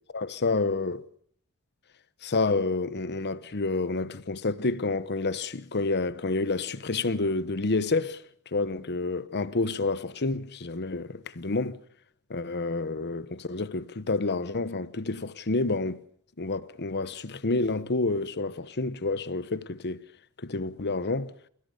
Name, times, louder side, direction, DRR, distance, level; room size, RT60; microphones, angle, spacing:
voice 1, 0.1-1.1 2.2-8.2 8.5-11.8 12.3-16.0 16.4-20.0 20.4-21.3, left 3 dB, 50° left, 1.0 m, -29 dB
28.5 x 16.0 x 6.8 m
head